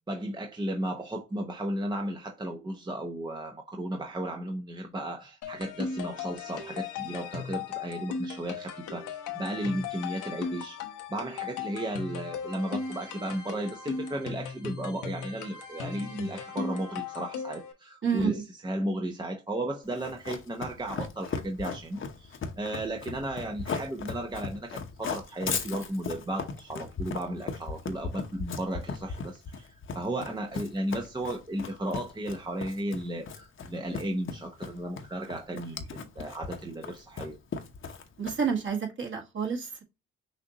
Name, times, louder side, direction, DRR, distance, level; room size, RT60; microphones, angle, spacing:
voice 1, 0.1-10.8 11.1-29.7 29.9-37.4, right 1 dB, 15° right, 0.8 m, -34 dB
sound 1, 5.4-17.7, left 6 dB, 85° left, 1.2 m, -37 dB
voice 2, 18.0-18.4 38.2-39.8, right 6 dB, 40° right, 1.8 m, -29 dB
Run, 19.9-38.6, left 5 dB, 45° left, 1.0 m, -37 dB
6.4 x 2.6 x 2.9 m
cardioid pair, 90°, 30 cm